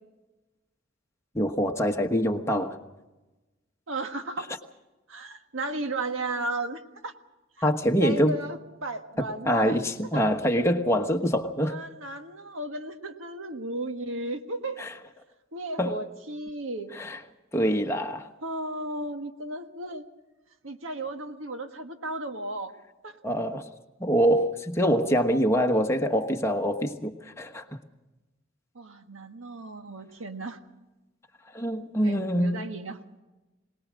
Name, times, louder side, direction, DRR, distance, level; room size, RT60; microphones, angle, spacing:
voice 1, 1.3-2.8 7.6-8.4 9.4-11.8 14.8-15.0 15.8-16.0 16.9-17.2 17.5-18.3 23.2-23.7 24.0-27.6 31.5-32.7, equal, 15° left, 1.2 m, -25 dB
voice 2, 3.9-4.5 5.1-7.1 7.6-7.7 8.0-9.8 11.6-14.8 15.5-16.9 18.4-20.0 20.6-22.7 23.0-23.2 28.7-30.6 32.0-33.0, right 2 dB, 90° right, 1.6 m, -34 dB
22.5 x 19.5 x 6.3 m
head